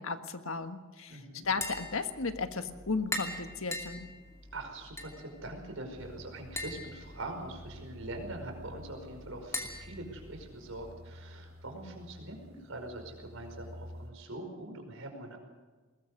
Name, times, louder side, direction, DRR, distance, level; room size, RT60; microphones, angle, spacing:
voice 1, 0.0-4.1, left 4 dB, 80° left, 8 dB, 1.5 m, -35 dB
voice 2, 1.1-1.4 4.5-15.4, right 2 dB, 75° right, 4 dB, 5.2 m, -43 dB
Tap, 1.4-10.9, left 2 dB, 15° left, 2.6 m, -43 dB
sound 1, 6.0-14.1, equal, 60° right, 5.0 m, -51 dB
21.0 x 20.5 x 6.7 m, 1.3 s
head